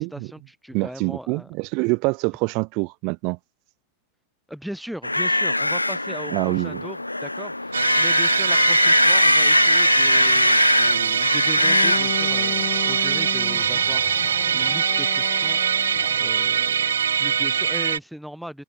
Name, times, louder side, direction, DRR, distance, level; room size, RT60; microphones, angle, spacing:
voice 1, 0.0-1.5 4.5-15.9 16.2-18.6, equal, ahead, 0.9 m, -38 dB
voice 2, 0.7-3.4 6.3-6.8, right 30 dB, 45° right, 1.0 m, -25 dB
sound 1, 5.0-12.2, left 2 dB, 85° left, 0.5 m, -20 dB
Musical instrument, 7.7-18.0, right 7 dB, 70° right, 0.4 m, -23 dB
Bowed string instrument, 11.6-16.4, left 25 dB, 40° left, 1.7 m, -34 dB
figure-of-eight pair, 90°, 0 cm